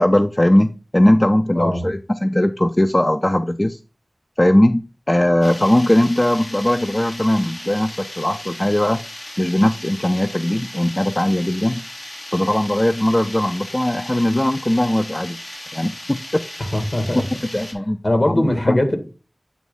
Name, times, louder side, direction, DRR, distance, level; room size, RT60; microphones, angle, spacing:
voice 1, 0.0-3.8 4.4-9.0 9.4-11.8 12.3-15.4 15.7-16.4 17.5-18.0 18.3-18.8, left 1 dB, 30° left, 8 dB, 0.4 m, -19 dB
voice 2, 1.5-1.9 16.6-17.2 18.0-19.0, left 1 dB, 55° left, 6 dB, 1.8 m, -20 dB
sound 1, 5.4-17.7, left 1 dB, 90° left, 2.8 m, -36 dB
8.4 x 3.1 x 5.3 m, 0.33 s
wide cardioid pair, 50°, 0 cm